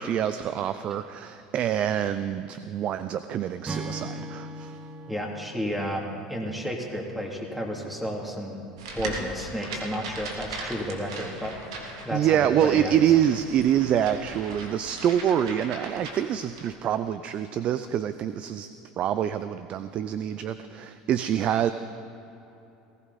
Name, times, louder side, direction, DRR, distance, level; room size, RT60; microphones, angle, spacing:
voice 1, 0.0-4.8 12.1-18.7 19.0-21.7, right 10 dB, 45° right, 12 dB, 0.5 m, -26 dB
Acoustic guitar / Strum, 3.7-7.1, right 2 dB, 20° right, 1.1 m, -39 dB
voice 2, 5.1-8.6 8.9-11.5 12.0-13.0, equal, 5° right, -1 dB, 2.9 m, -32 dB
sound 1, 8.8-16.7, right 2 dB, 85° right, 2.1 m, -39 dB
19.0 x 16.0 x 4.2 m, 2.9 s
supercardioid pair, 95°, 3 cm